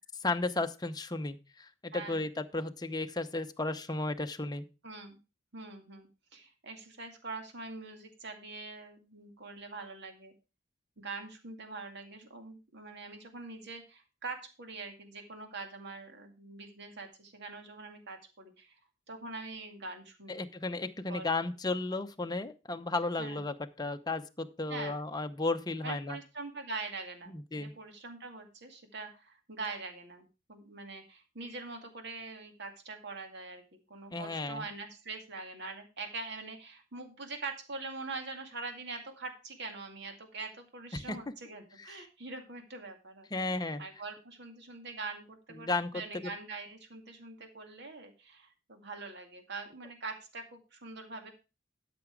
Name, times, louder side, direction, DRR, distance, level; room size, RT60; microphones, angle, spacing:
voice 1, 0.2-4.7 20.3-26.2 27.3-27.7 34.1-34.7 40.9-41.2 41.8-42.0 43.3-43.8 45.5-46.3, left 2 dB, 20° left, 7 dB, 0.8 m, -34 dB
voice 2, 1.9-2.2 4.8-5.2 5.5-10.3 11.0-18.8 19.1-20.5 21.0-21.3 23.2-23.4 24.7-25.0 25.8-33.6 33.9-51.3, right 3 dB, 60° right, 5 dB, 2.3 m, -43 dB
12.5 x 6.0 x 4.7 m, 0.30 s
head